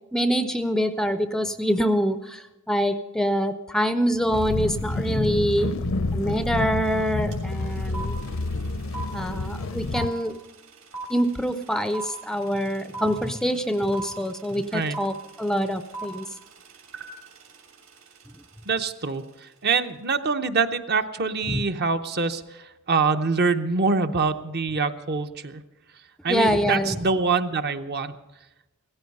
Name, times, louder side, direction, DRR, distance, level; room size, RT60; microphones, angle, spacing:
voice 1, 0.1-8.2 9.1-10.4 11.1-16.3 21.5-21.6 26.3-27.0, equal, 5° left, 10 dB, 0.4 m, -25 dB
sound 1, 4.3-10.1, left 2 dB, 65° left, 0.6 m, -29 dB
sound 2, 7.3-7.4 7.6-18.8, right 3 dB, 65° right, 3.2 m, -39 dB
voice 2, 18.7-25.6 26.2-28.2, right 4 dB, 50° right, 8 dB, 0.8 m, -25 dB
16.5 x 14.5 x 5.4 m, 1.0 s
head